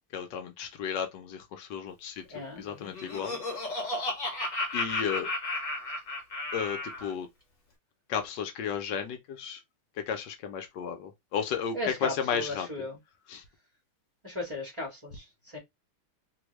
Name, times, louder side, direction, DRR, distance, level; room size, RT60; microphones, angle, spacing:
voice 1, 0.1-3.4 4.7-5.3 6.5-7.3 8.1-9.6 10.0-12.7 13.3-13.4, left 7 dB, 70° left, 1.1 m, -33 dB
voice 2, 2.3-2.6 11.7-13.0 14.2-15.6, left 1 dB, 25° right, 0.6 m, -36 dB
Laughter, 2.6-7.1, left 2 dB, 50° left, 1.1 m, -33 dB
3.4 x 2.2 x 3.0 m
omnidirectional pair, 2.4 m